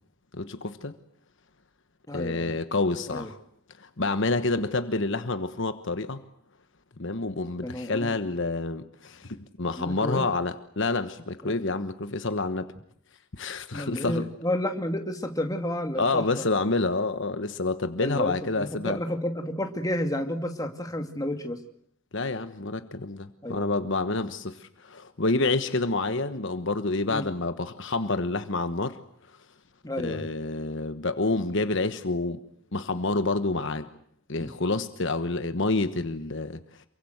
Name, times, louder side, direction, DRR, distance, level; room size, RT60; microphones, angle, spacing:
voice 1, 0.3-1.0 2.1-3.4 3.8-6.2 7.0-12.7 13.4-14.2 16.0-19.0 22.1-29.0 30.0-32.4 32.7-33.9 34.3-36.6, left 3 dB, 55° left, 1.2 m, -28 dB
voice 2, 2.1-2.5 3.1-3.3 7.6-8.2 9.8-10.3 11.4-11.5 13.7-16.4 18.0-21.6 23.4-23.7 27.1-27.3 29.8-30.3 34.4-34.5, left 1 dB, 15° left, 2.5 m, -31 dB
28.0 x 23.5 x 8.1 m
head